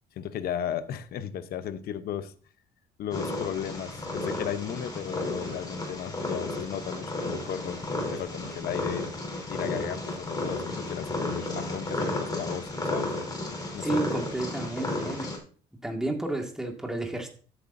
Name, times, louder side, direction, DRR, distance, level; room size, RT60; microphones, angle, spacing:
voice 1, 0.2-2.3 3.0-7.8 8.1-9.1 9.5-13.1 13.7-14.0, left 9 dB, 65° left, 0.9 m, -35 dB
Purr, 3.1-15.4, left 2 dB, 25° left, 3.7 m, -33 dB
voice 2, 13.8-15.3 15.8-17.3, right 2 dB, 5° right, 2.0 m, -31 dB
13.0 x 8.2 x 2.7 m
cardioid pair, 110°, 17 cm